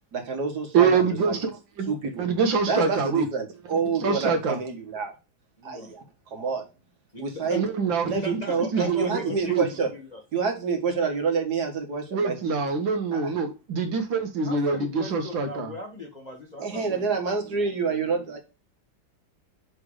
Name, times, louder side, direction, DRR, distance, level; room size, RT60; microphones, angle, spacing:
voice 1, 0.1-1.4 1.9-2.2 2.7-5.1 5.6-6.0 6.3-6.6 7.2-7.6 8.1-9.9 10.3-12.6 13.1-13.3 16.6-18.4, right 5 dB, 55° right, 2.0 m, -28 dB
voice 2, 0.7-1.5 1.8-1.9 2.2-3.3 4.0-4.6 7.5-9.7 12.1-15.7, right 5 dB, 75° right, 2.0 m, -25 dB
voice 3, 5.6-5.9 7.1-7.6 8.0-10.2 14.4-17.2, left 2 dB, 25° left, 1.4 m, -39 dB
6.2 x 3.5 x 4.8 m
omnidirectional pair, 2.1 m